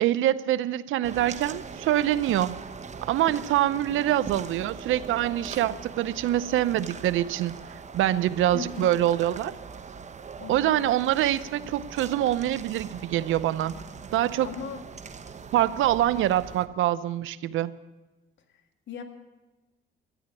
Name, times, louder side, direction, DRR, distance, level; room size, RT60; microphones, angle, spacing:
voice 1, 0.0-2.6 3.1-7.5 7.9-9.5 10.5-13.7 14.1-14.5 15.5-17.7, right 13 dB, 80° right, 16 dB, 0.7 m, -25 dB
sound 1, 1.0-16.7, right 5 dB, 35° right, 1.0 m, -41 dB
voice 2, 8.5-8.9 10.4-10.9 14.4-14.8 18.9-19.0, left 5 dB, 70° left, 5 dB, 1.8 m, -37 dB
13.0 x 10.0 x 9.7 m, 1.1 s
cardioid pair, 90°, 20 cm